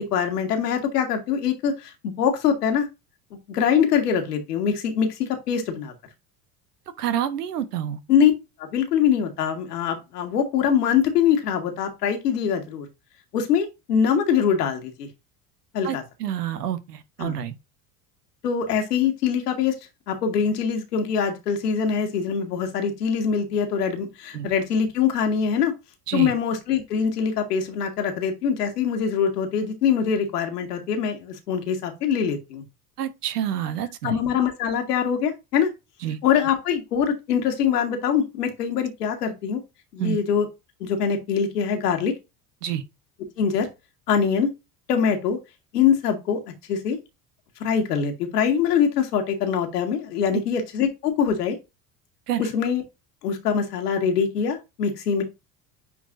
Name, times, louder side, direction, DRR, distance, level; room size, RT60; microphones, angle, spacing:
voice 1, 0.0-2.9 3.5-5.9 8.1-8.3 8.6-12.9 13.3-15.1 15.7-16.0 17.2-17.4 18.4-19.8 20.1-25.7 26.1-32.6 34.0-35.7 36.2-39.6 39.9-40.5 40.8-42.1 43.4-43.7 44.1-44.5 44.9-45.4 45.7-46.4 46.7-47.0 47.6-51.6 52.4-52.8 53.2-55.2, left 7 dB, 80° left, 1.9 m, -23 dB
voice 2, 7.0-8.0 15.8-17.5 24.3-24.5 26.1-26.3 33.0-34.1 36.0-36.2 40.0-40.2 42.6-42.8 52.3-52.4, right 10 dB, 80° right, 1.1 m, -28 dB
9.3 x 4.0 x 2.6 m
hypercardioid pair, 70°, 46 cm